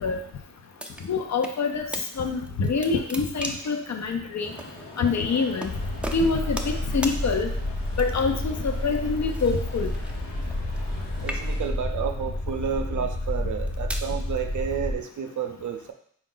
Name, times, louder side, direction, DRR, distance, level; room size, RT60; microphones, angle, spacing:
sound 1, 0.8-1.6 1.9-2.1 2.5-3.8 4.6-4.7 5.6-5.7 6.0-6.8 7.0-7.2 7.9-8.4 9.3-10.9 11.2-11.8 12.5-12.7 13.4-14.1, right 1 dB, 5° right, 0.5 m, -36 dB
voice 1, 1.1-1.9 2.2-4.5 5.0-5.7 6.1-6.6 6.9-7.5 8.0-9.9, left 4 dB, 55° left, 5 dB, 0.6 m, -25 dB
sound 2, 4.4-11.7, equal, 90° left, 1.0 m, -43 dB
sound 3, 5.6-15.0, left 1 dB, 25° left, 0.7 m, -30 dB
voice 2, 11.2-15.9, right 8 dB, 65° right, 5 dB, 0.6 m, -31 dB
3.8 x 2.4 x 3.8 m, 0.63 s
cardioid pair, 50°, 33 cm